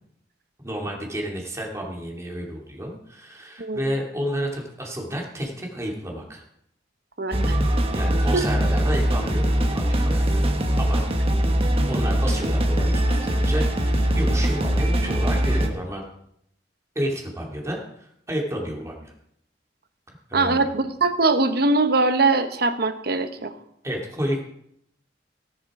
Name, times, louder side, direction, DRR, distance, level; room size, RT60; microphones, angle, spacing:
voice 1, 0.6-6.4 7.9-10.4 10.8-11.0 11.9-16.0 16.9-19.1 20.3-20.6 23.8-24.4, equal, 15° right, 0 dB, 2.6 m, -31 dB
voice 2, 7.2-7.6 8.3-8.4 20.3-23.5, right 3 dB, 60° right, 9 dB, 1.0 m, -22 dB
sound 1, 7.3-15.7, right 1 dB, 35° right, 1.3 m, -22 dB
17.0 x 7.3 x 4.9 m, 0.73 s
head